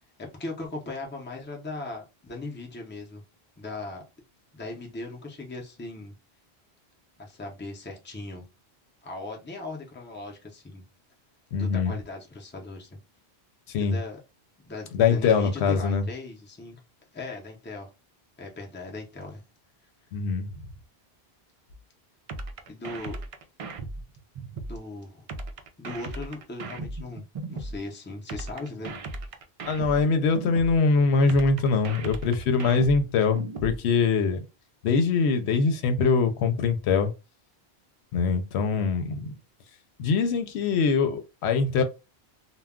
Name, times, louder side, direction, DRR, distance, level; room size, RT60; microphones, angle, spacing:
voice 1, 0.2-3.2 3.6-4.0 4.5-6.1 7.2-8.4 9.0-10.8 11.5-13.0 13.8-14.2 14.6-16.8 17.1-17.9 18.4-19.4 22.7-23.2 24.7-25.3 25.8-28.9, left 2 dB, 15° left, 0.5 m, -38 dB
voice 2, 11.5-11.9 13.7-14.0 14.9-16.0 20.1-20.5 29.6-34.4 34.8-37.1 38.1-39.3 40.0-41.8, left 5 dB, 85° left, 0.8 m, -23 dB
sound 1, 22.3-24.8 25.3-27.8 28.3-30.8 31.3-33.8, right 2 dB, 60° right, 0.3 m, -36 dB
2.2 x 2.2 x 3.5 m
omnidirectional pair, 1.1 m